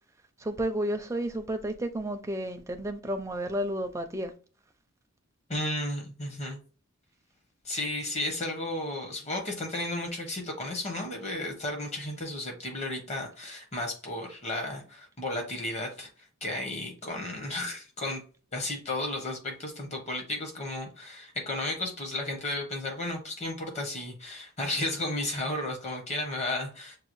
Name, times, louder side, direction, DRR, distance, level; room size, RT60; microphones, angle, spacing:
voice 1, 0.4-4.3, right 1 dB, 15° right, 0.4 m, -31 dB
voice 2, 5.5-6.6 7.6-18.2 18.5-27.0, left 1 dB, 30° left, 1.0 m, -33 dB
6.5 x 2.3 x 3.1 m
head